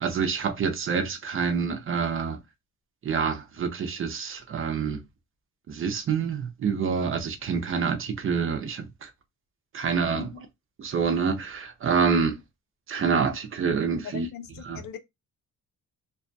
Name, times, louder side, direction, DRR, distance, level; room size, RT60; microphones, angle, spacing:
voice 1, 0.0-2.4 3.0-5.0 5.7-9.1 9.7-10.3 10.8-12.4 12.9-14.3 14.6-14.8, right 5 dB, 40° right, 0.5 m, -27 dB
voice 2, 14.0-15.0, left 8 dB, 85° left, 0.5 m, -40 dB
2.3 x 2.2 x 2.5 m
cardioid pair, 155°, 33 cm